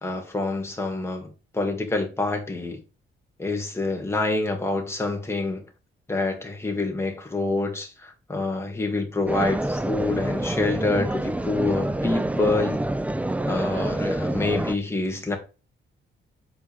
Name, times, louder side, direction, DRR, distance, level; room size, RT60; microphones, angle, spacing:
voice 1, 0.0-2.8 3.4-5.6 6.1-12.8 13.4-15.4, left 2 dB, 10° left, 2.0 m, -27 dB
sound 1, 9.3-14.8, right 1 dB, 5° right, 0.4 m, -27 dB
8.0 x 5.1 x 3.4 m
cardioid pair, 135°, 21 cm